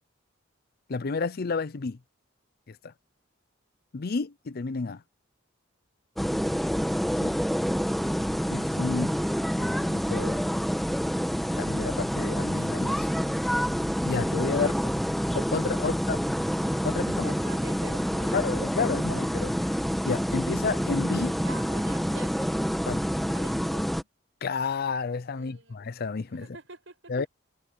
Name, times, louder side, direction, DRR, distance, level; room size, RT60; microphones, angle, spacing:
voice 1, 0.9-2.0 2.7-2.9 3.9-5.0 7.2-7.4 8.5-9.2 9.6-10.4 11.5-13.1 14.0-14.7 15.3-16.2 16.8-17.3 18.3-19.8 20.0-21.4 22.9-23.0 24.4-26.4 27.1-27.3, left 4 dB, 50° left, 0.5 m, -31 dB
sound 1, 6.2-24.0, equal, ahead, 1.3 m, -27 dB
voice 2, 6.2-7.0 14.5-14.8 15.8-16.2 17.2-18.7 21.4-22.5 23.3-24.1 25.3-25.8 26.3-27.1, right 3 dB, 65° right, 7.8 m, -47 dB
head